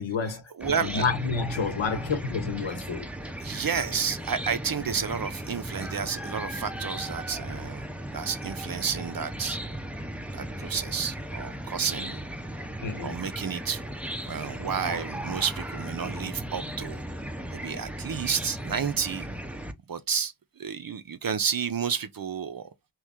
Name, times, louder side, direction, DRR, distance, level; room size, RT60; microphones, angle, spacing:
voice 1, 0.0-0.4 0.8-3.1 12.8-13.3, left 5 dB, 65° left, 0.8 m, -29 dB
Chicken rooster / Cricket, 0.6-19.7, right 1 dB, 5° right, 0.5 m, -36 dB
voice 2, 0.6-1.0 3.4-7.8 8.1-9.6 10.4-12.2 13.0-13.8 14.3-17.0 17.5-19.3 19.9-20.3 20.6-22.6, right 7 dB, 45° right, 0.6 m, -31 dB
3.0 x 2.4 x 3.5 m
wide cardioid pair, 65°, 49 cm